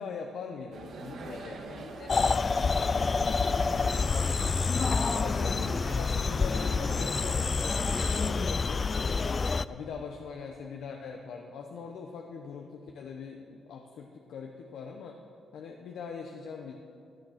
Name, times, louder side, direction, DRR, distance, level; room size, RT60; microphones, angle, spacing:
voice 1, 0.0-1.8 5.0-9.3 9.7-15.2 15.5-16.7, left 5 dB, 80° left, 2 dB, 0.8 m, -42 dB
sound 1, 0.7-8.4, right 3 dB, 70° right, 1.6 m, -43 dB
voice 2, 1.3-1.6 3.6-5.4, left 3 dB, 60° left, -1 dB, 3.5 m, -48 dB
sound 2, 2.1-9.6, left 4 dB, 40° left, 0.3 m, -27 dB
15.5 x 9.1 x 5.8 m, 2.5 s
cardioid pair, 80°, 0 cm